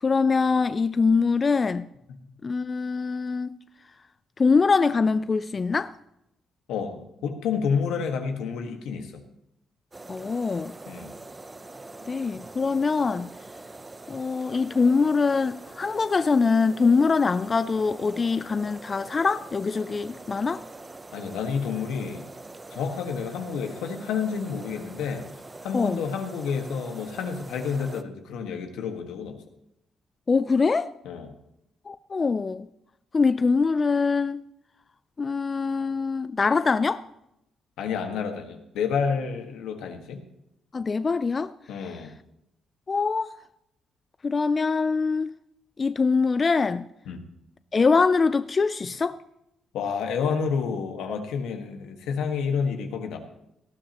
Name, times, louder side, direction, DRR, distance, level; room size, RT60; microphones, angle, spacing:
voice 1, 0.0-1.9 2.4-3.6 4.4-5.9 10.1-10.7 12.1-13.3 14.1-20.6 25.7-26.0 30.3-30.9 31.9-32.7 33.1-34.4 35.2-37.0 40.7-41.5 42.9-43.3 44.2-45.3 45.8-46.8 47.7-49.2, left 4 dB, 35° left, 0.3 m, -23 dB
voice 2, 6.7-9.2 10.9-11.1 21.1-22.2 22.7-25.2 25.6-29.4 31.0-31.3 37.8-40.2 41.7-42.1 47.1-47.2 49.7-53.2, left 6 dB, 85° left, 1.5 m, -29 dB
sound 1, 9.9-28.0, right 2 dB, 20° right, 0.6 m, -44 dB
18.0 x 12.0 x 2.9 m
cardioid pair, 90°, 0 cm